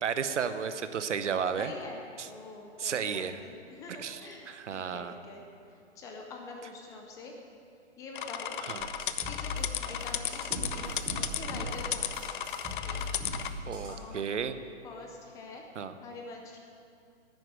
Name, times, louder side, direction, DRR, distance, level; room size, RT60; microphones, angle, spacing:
voice 1, 0.0-1.7 2.2-2.3 2.8-3.4 4.0-4.2 4.5-5.1 8.6-8.9 13.7-14.6 15.8-15.9, right 7 dB, 75° right, 11 dB, 1.0 m, -33 dB
voice 2, 1.6-5.4 5.7-7.4 8.0-8.6 9.3-12.3 13.9-14.2 14.8-15.7 16.0-16.6, left 3 dB, 10° left, 2 dB, 0.5 m, -45 dB
sound 1, 8.2-13.5, left 10 dB, 45° left, 0.7 m, -34 dB
sound 2, 8.8-14.0, left 1 dB, 15° right, 3.1 m, -39 dB
11.0 x 9.2 x 8.2 m, 2.5 s
hypercardioid pair, 140°, 36 cm